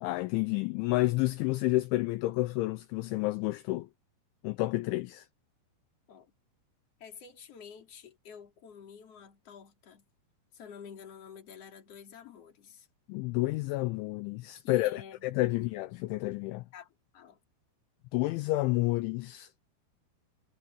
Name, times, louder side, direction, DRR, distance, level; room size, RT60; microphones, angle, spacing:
voice 1, 0.0-3.9 4.4-5.3 13.1-16.7 18.1-19.6, left 19 dB, 80° left, 2.9 m, -30 dB
voice 2, 7.0-10.1 10.5-12.9 14.6-15.7 16.7-17.4, left 7 dB, 35° left, 3.3 m, -50 dB
omnidirectional pair, 5.8 m